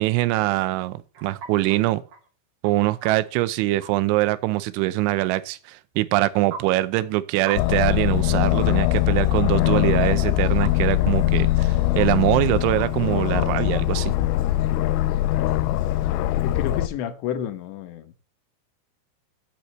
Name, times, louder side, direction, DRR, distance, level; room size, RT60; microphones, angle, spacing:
voice 1, 0.0-2.0 2.6-14.1, right 17 dB, 80° right, 3.0 m, -23 dB
sound 1, 0.7-1.8 2.1-2.3 2.6-3.3 3.8-3.9 5.9-6.0 6.5-6.6 7.0-7.1 7.4-7.6 7.9-8.0 9.9-10.0 10.6-10.7 11.3-11.4 11.6-11.7 12.0-12.1 12.8-12.9 14.0-14.1 14.4-14.5, right 4 dB, 50° right, 3.7 m, -39 dB
Aircraft, 7.6-16.9, left 15 dB, 90° left, 3.2 m, -22 dB
voice 2, 16.0-18.1, left 9 dB, 75° left, 3.0 m, -31 dB
13.5 x 8.2 x 3.1 m
omnidirectional pair, 5.6 m